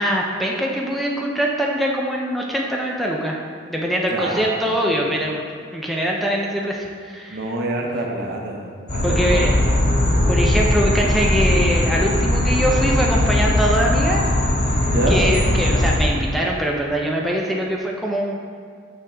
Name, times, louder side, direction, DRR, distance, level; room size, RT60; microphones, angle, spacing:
voice 1, 0.0-3.4 3.7-7.5 9.0-9.5 10.3-14.2 15.1-18.4, equal, ahead, -2 dB, 0.5 m, -23 dB
voice 2, 4.1-5.1 7.3-9.4 14.9-15.3, right 1 dB, 60° right, 0 dB, 0.9 m, -27 dB
sound 1, 8.9-16.0, left 1 dB, 40° left, 1.6 m, -19 dB
6.5 x 5.8 x 3.5 m, 2.1 s
head